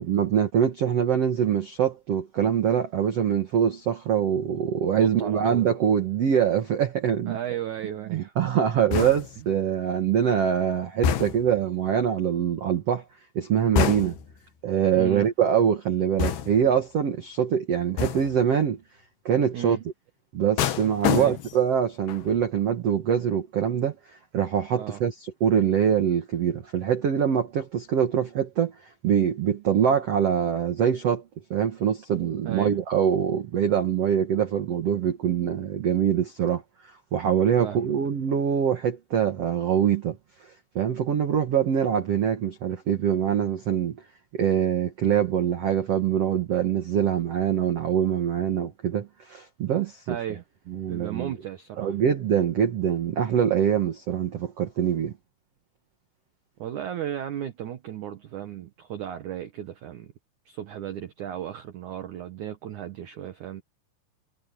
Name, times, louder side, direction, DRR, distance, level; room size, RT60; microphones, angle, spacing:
voice 1, 0.0-7.4 8.1-13.0 13.3-14.1 14.6-18.8 19.2-19.8 20.3-25.1 25.4-31.2 31.5-40.2 40.4-44.0 44.3-50.2 50.7-51.3 51.8-55.1, right 8 dB, 85° right, 1.3 m, -24 dB
voice 2, 5.0-5.7 7.3-8.5 8.8-8.9 14.9-15.3 19.5-19.8 21.1-21.4 24.7-25.0 32.5-32.8 37.6-37.9 50.1-50.4 50.9-51.9 56.6-60.1 60.5-63.6, right 10 dB, 70° right, 1.9 m, -35 dB
sound 1, 8.9-9.5 11.0-11.6 13.8-14.4 16.2-16.8 18.0-18.4 20.6-21.7 22.1-22.4, left 8 dB, 70° left, 3.6 m, -27 dB
omnidirectional pair, 5.1 m